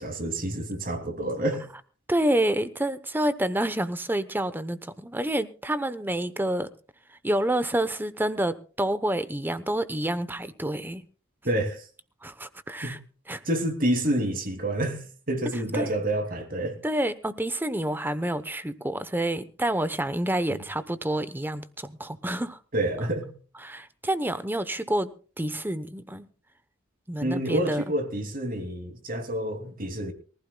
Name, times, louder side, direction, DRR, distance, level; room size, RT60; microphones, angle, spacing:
voice 1, 0.0-1.7 11.4-11.8 12.8-13.0 13.5-16.8 20.5-20.6 22.7-23.3 27.2-30.1, right 1 dB, 45° right, 2.8 m, -28 dB
voice 2, 2.1-6.7 7.2-11.0 12.2-13.0 13.3-13.4 15.7-15.9 16.8-22.6 23.6-25.1 25.4-26.3 27.1-27.8, right 1 dB, 10° right, 0.9 m, -28 dB
24.0 x 15.5 x 2.3 m
head